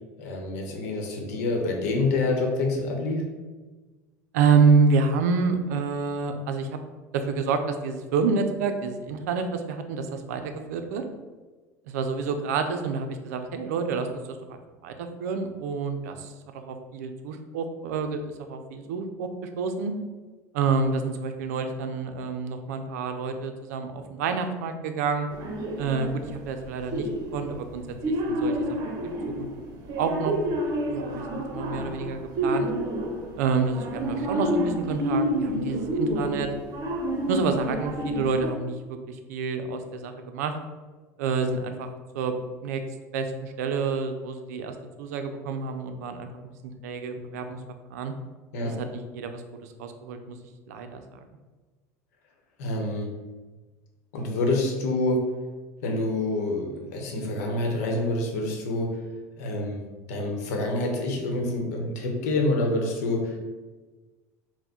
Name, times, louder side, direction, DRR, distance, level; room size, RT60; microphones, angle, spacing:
voice 1, 0.2-3.2 48.5-48.7 52.6-53.1 54.1-55.2 55.8-59.0 59.4-59.8 60.1-63.4, left 2 dB, 80° left, 1 dB, 0.9 m, -27 dB
voice 2, 4.3-6.7 7.1-11.0 11.9-19.3 19.6-19.9 20.5-25.3 25.8-28.5 29.0-29.5 30.0-30.3 30.9-32.7 33.4-36.5 37.3-40.6 41.2-41.9 42.1-42.3 42.6-42.8 43.1-47.6 47.9-48.1 48.6-50.4 50.7-51.0, right 5 dB, 85° right, 7 dB, 0.4 m, -28 dB
sound 1, 25.3-26.4 26.9-33.5 33.7-38.5, equal, 50° right, 0.8 m, -29 dB
4.3 x 2.1 x 4.2 m, 1.3 s
hypercardioid pair, 85°, 8 cm